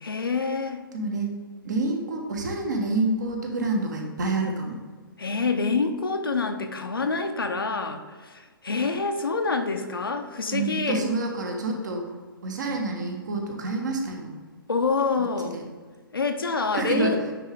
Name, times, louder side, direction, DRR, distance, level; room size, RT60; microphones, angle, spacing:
voice 1, 0.0-0.8 5.2-11.0 14.7-15.6 16.1-17.2, left 4 dB, 75° left, 5 dB, 0.8 m, -27 dB
voice 2, 0.9-1.3 1.6-4.8 10.5-12.2 12.4-14.4 15.5-15.6 16.7-17.1, right 3 dB, 50° right, 2 dB, 1.2 m, -28 dB
9.2 x 3.7 x 3.4 m, 1.4 s
figure-of-eight pair, 125°, 12 cm